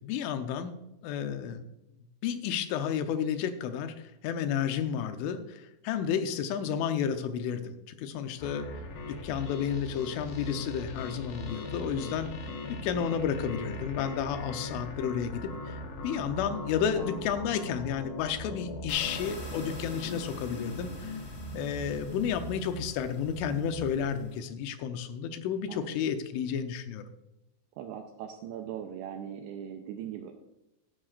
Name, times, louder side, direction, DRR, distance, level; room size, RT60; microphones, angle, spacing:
voice 1, 0.0-0.7 1.0-1.6 2.2-8.7 9.0-12.3 12.7-21.2 21.5-27.1, left 8 dB, 85° left, 8 dB, 3.3 m, -32 dB
sound 1, 8.4-24.2, left 1 dB, 70° left, 3.3 m, -40 dB
sound 2, 18.9-24.4, left 1 dB, 55° left, 5.1 m, -48 dB
voice 2, 25.7-26.1 27.8-30.3, right 9 dB, 85° right, 5 dB, 2.4 m, -40 dB
14.5 x 10.0 x 2.5 m, 0.93 s
omnidirectional pair, 5.5 m